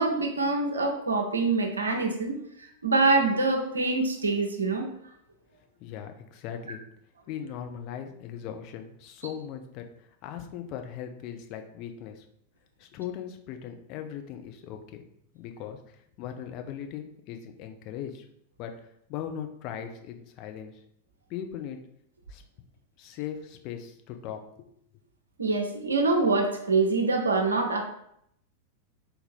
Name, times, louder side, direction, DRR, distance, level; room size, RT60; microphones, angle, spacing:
voice 1, 0.0-2.4 2.8-4.9 25.4-27.8, right 3 dB, 75° right, 3 dB, 0.6 m, -25 dB
voice 2, 5.8-6.8 7.3-9.8 10.2-12.2 12.8-15.0 15.3-15.8 16.2-18.2 18.6-18.7 19.1-20.7 21.3-21.8 22.3-22.4 23.0-24.7, left 9 dB, 40° left, 5 dB, 0.6 m, -39 dB
3.9 x 2.7 x 4.3 m, 0.72 s
figure-of-eight pair, 90°, 0 cm